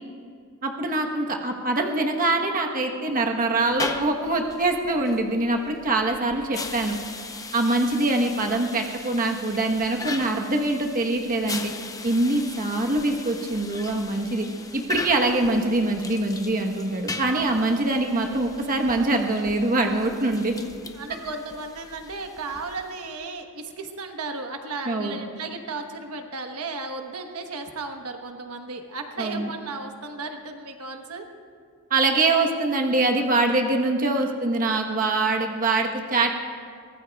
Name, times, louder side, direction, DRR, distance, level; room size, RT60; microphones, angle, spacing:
voice 1, 0.6-7.0 7.5-11.7 12.0-14.5 14.7-20.5 24.9-25.2 29.2-29.5 31.9-36.3, right 2 dB, 40° right, 2 dB, 1.1 m, -24 dB
sound 1, 3.6-23.2, left 3 dB, 15° left, 0.7 m, -38 dB
voice 2, 20.9-31.3, right 3 dB, 90° right, 5 dB, 1.2 m, -35 dB
23.0 x 18.5 x 2.3 m, 2.2 s
head